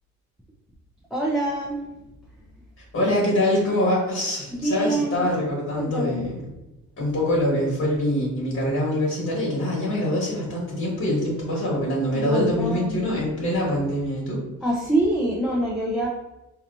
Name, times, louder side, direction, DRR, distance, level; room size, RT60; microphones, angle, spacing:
voice 1, 1.1-1.9 4.5-5.3 5.8-6.3 12.1-13.2 14.6-16.1, right 1 dB, ahead, -4 dB, 0.6 m, -25 dB
voice 2, 2.9-6.4 7.0-14.4, left 1 dB, 55° left, -4 dB, 1.4 m, -24 dB
4.0 x 2.9 x 2.6 m, 1.0 s
cardioid pair, 90°, 30 cm